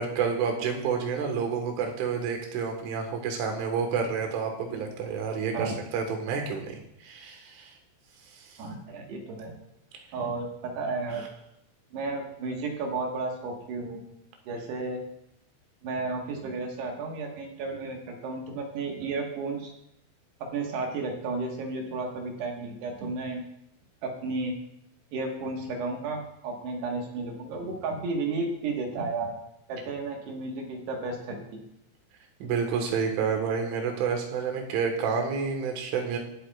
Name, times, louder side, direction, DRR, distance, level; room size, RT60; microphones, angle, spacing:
voice 1, 0.0-6.8 7.0-7.7 32.4-36.2, right 6 dB, 90° right, 4 dB, 4.0 m, -29 dB
voice 2, 8.6-9.5 10.1-11.2 11.9-14.0 14.5-15.0 15.8-19.7 20.4-23.4 24.0-24.5 25.1-29.3 29.7-31.6, right 3 dB, 65° right, 1 dB, 3.4 m, -33 dB
23.5 x 8.2 x 2.4 m, 0.78 s
omnidirectional pair, 5.4 m